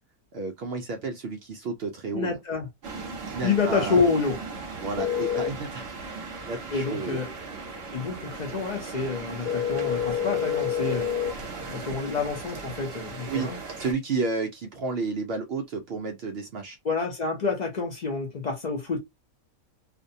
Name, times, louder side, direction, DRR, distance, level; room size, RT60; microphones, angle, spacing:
voice 1, 0.3-2.4 3.3-4.0 4.8-5.9 6.4-7.2 13.3-13.5 13.8-16.8, right 4 dB, 75° right, 0.5 m, -31 dB
voice 2, 2.1-2.7 3.4-4.4 6.7-7.3 7.9-11.1 11.7-13.6 16.8-19.0, left 4 dB, 65° left, 0.4 m, -28 dB
sound 1, 2.8-13.9, right 4 dB, 50° right, 0.8 m, -38 dB
sound 2, 5.0-5.5 9.5-11.3, left 9 dB, 85° left, 1.2 m, -27 dB
2.5 x 2.1 x 2.6 m
omnidirectional pair, 1.5 m